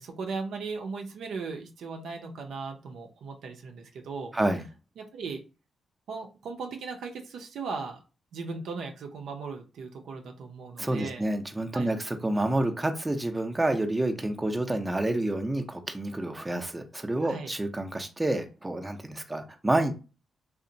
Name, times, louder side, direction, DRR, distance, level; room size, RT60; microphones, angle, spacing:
voice 1, 0.0-4.3 5.0-5.4 6.1-8.0 8.3-11.3 11.7-11.9 17.2-17.5, right 4 dB, 80° right, 3 dB, 0.5 m, -37 dB
voice 2, 4.3-4.6 10.8-19.9, right 1 dB, 20° right, 6 dB, 0.5 m, -28 dB
2.8 x 2.0 x 2.6 m, 0.32 s
cardioid pair, 60°, 0 cm